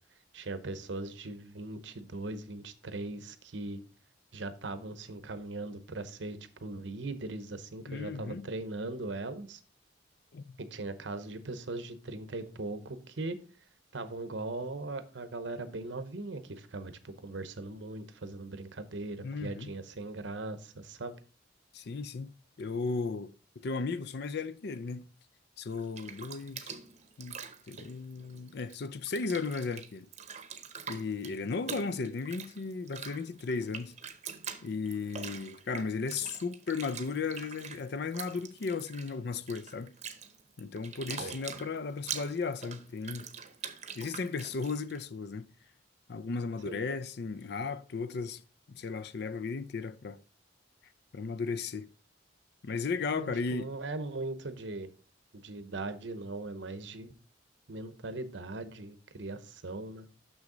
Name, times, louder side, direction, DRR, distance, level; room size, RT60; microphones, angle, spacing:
voice 1, 0.3-3.8 4.3-9.6 10.6-13.4 13.9-21.2 41.2-41.4 46.6-46.8 53.1-54.9 55.3-57.1 57.7-60.1, right 2 dB, 75° right, 0.8 m, -39 dB
voice 2, 7.9-8.5 10.3-10.6 19.2-19.7 21.7-22.3 22.6-23.3 23.6-25.0 25.6-26.8 27.2-27.4 27.7-30.1 30.9-33.9 34.6-39.9 40.6-43.3 44.0-45.5 46.1-48.4 48.7-50.2 51.1-51.9 52.6-53.7, left 4 dB, 60° left, 0.5 m, -35 dB
Bathtub (filling or washing), 25.7-28.8 29.0-45.0, right 7 dB, 40° right, 0.8 m, -44 dB
6.4 x 6.3 x 3.8 m
head